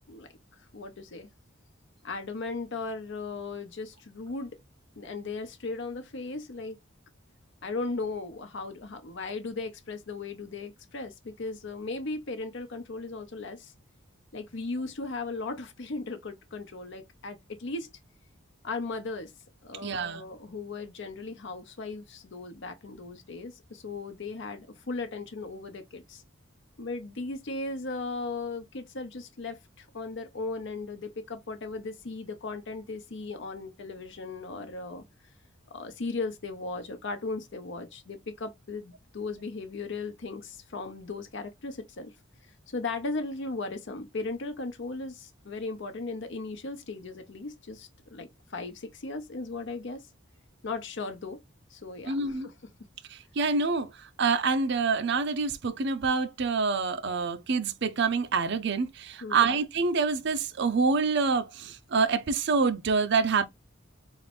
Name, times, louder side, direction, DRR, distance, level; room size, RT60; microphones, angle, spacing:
voice 1, 0.6-1.3 2.0-4.5 5.0-6.8 7.6-13.7 14.3-17.9 18.6-19.3 19.6-26.2 26.8-35.0 35.7-42.1 42.7-50.0 50.6-51.4 51.7-52.5 59.2-59.5, left 3 dB, 60° left, 0.6 m, -37 dB
voice 2, 19.8-20.2 52.1-52.5 53.1-53.9 54.2-63.5, right 4 dB, 55° right, 0.5 m, -26 dB
4.0 x 2.5 x 3.3 m
head